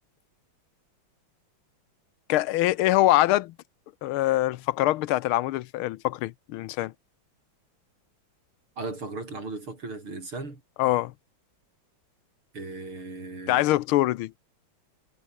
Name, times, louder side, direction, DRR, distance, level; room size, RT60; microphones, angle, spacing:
voice 1, 2.3-3.5 4.0-6.9 10.8-11.1 13.5-14.3, left 16 dB, 85° left, 1.5 m, -24 dB
voice 2, 8.8-10.6 12.5-13.7, right 3 dB, 85° right, 7.3 m, -37 dB
omnidirectional pair, 2.3 m